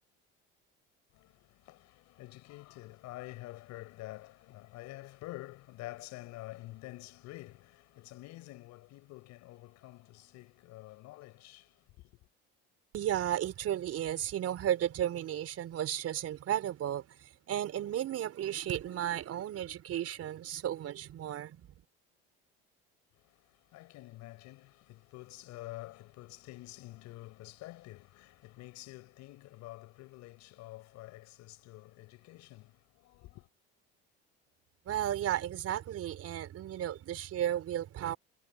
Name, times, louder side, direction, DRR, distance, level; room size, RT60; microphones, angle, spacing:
voice 1, 1.1-12.2 23.1-33.5, left 18 dB, 65° left, 4.6 m, -48 dB
voice 2, 12.9-21.7 34.9-38.2, right 11 dB, 55° right, 4.4 m, -34 dB
hypercardioid pair, 75°, 29 cm